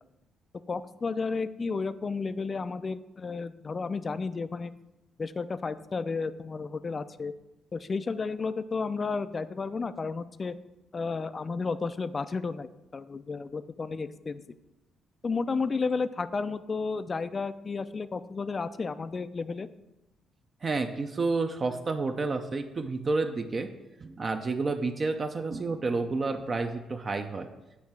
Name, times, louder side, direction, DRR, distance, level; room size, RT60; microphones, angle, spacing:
voice 1, 0.7-4.7 5.2-7.3 7.7-10.5 10.9-14.4 15.2-19.7, left 4 dB, 35° left, 13 dB, 0.4 m, -32 dB
voice 2, 20.6-23.7 24.0-27.5, right 3 dB, 35° right, 6 dB, 0.5 m, -30 dB
8.3 x 3.2 x 5.9 m, 0.97 s
cardioid pair, 90°, 0 cm